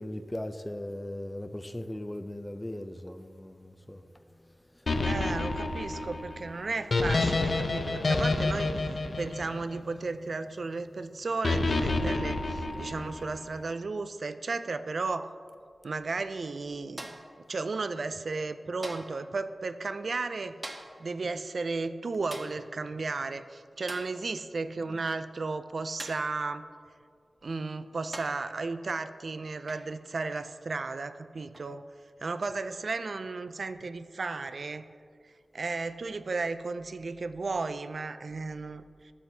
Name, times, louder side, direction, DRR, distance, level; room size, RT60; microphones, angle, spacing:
voice 1, 0.0-4.1 4.4-4.5 4.7-4.9, left 1 dB, 10° left, 0.4 m, -38 dB
sound 1, 4.9-10.1 11.4-13.4, left 2 dB, 60° left, 0.6 m, -29 dB
voice 2, 5.0-8.7 9.2-15.3 15.8-17.2 17.5-20.6 21.0-26.7 27.4-31.8 32.2-34.8 35.2-39.1, right 3 dB, 60° right, 0.4 m, -34 dB
sound 2, 17.0-17.4 18.8-19.2 20.6-21.0 22.3-22.6 23.9-24.2 26.0-26.3 27.4-27.5 28.1-28.5 29.7-29.9 31.5-31.7, right 1 dB, 30° right, 0.8 m, -42 dB
12.0 x 7.6 x 2.7 m
wide cardioid pair, 100°, 0 cm